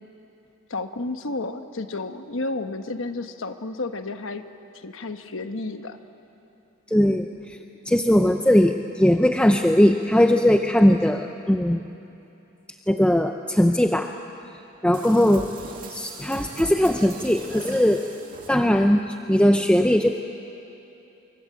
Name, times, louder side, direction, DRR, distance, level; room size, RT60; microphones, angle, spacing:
voice 1, 0.7-4.5 4.7-6.0, left 2 dB, 65° left, 8 dB, 1.2 m, -31 dB
voice 2, 6.9-7.6 7.9-11.8 12.9-14.1 14.8-15.4 15.9-18.0 18.5-20.1, equal, 5° left, 5 dB, 0.6 m, -19 dB
sound 1, 14.9-19.1, right 2 dB, 40° right, 2.5 m, -40 dB
25.5 x 23.5 x 8.5 m, 2.9 s
head